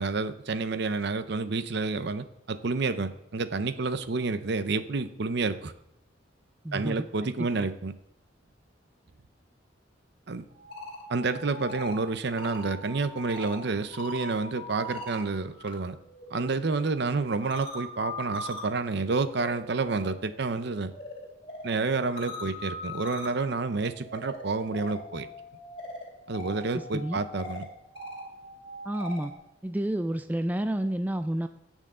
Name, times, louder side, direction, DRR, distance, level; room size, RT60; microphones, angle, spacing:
voice 1, 0.0-5.7 6.7-7.9 10.3-10.4 11.1-16.0 16.3-20.9 21.6-25.3 26.3-27.7, right 3 dB, 60° right, 12 dB, 0.6 m, -29 dB
voice 2, 6.6-7.0 26.7-27.2 28.8-29.3 29.6-31.5, right 1 dB, 10° right, 9 dB, 0.3 m, -30 dB
sound 1, 10.5-15.8 16.1-29.3, left 1 dB, 30° left, 2.6 m, -42 dB
17.0 x 6.3 x 3.7 m, 0.85 s
head